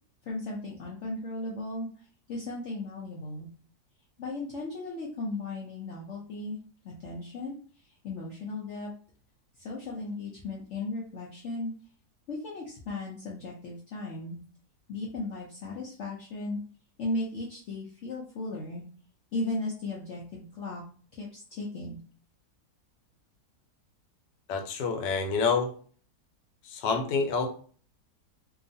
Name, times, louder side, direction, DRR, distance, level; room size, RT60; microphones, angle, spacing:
voice 1, 0.2-3.5 4.2-6.6 6.8-7.6 8.0-8.9 9.6-11.7 12.3-14.4 14.9-16.6 17.0-18.8 19.3-20.8 21.1-22.0, left 2 dB, 70° left, -3 dB, 0.6 m, -36 dB
voice 2, 24.5-25.7 26.6-27.5, left 5 dB, 90° left, 5 dB, 1.2 m, -27 dB
2.8 x 2.3 x 2.5 m, 0.44 s
omnidirectional pair, 1.8 m